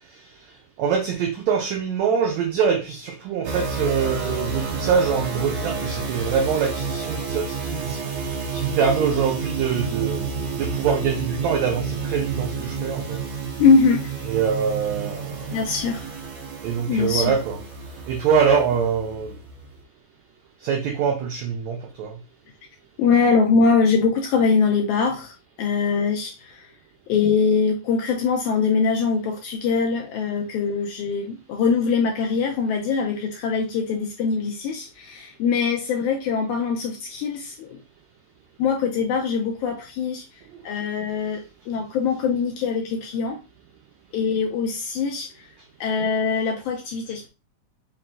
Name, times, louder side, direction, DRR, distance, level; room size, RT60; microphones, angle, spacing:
voice 1, 0.8-8.0 8.5-10.3 10.6-13.2 14.3-15.6 16.6-17.6 18.1-19.4 20.6-22.1, right 6 dB, 85° right, 1.6 m, -24 dB
sound 1, 3.4-19.7, right 4 dB, 60° right, 1.9 m, -30 dB
voice 2, 13.6-14.2 15.5-16.1 16.9-17.3 23.0-26.7 27.1-37.8 38.6-40.2 40.6-43.4 44.1-45.5 45.8-47.3, left 5 dB, 80° left, 1.8 m, -22 dB
5.6 x 2.2 x 3.7 m
omnidirectional pair, 4.0 m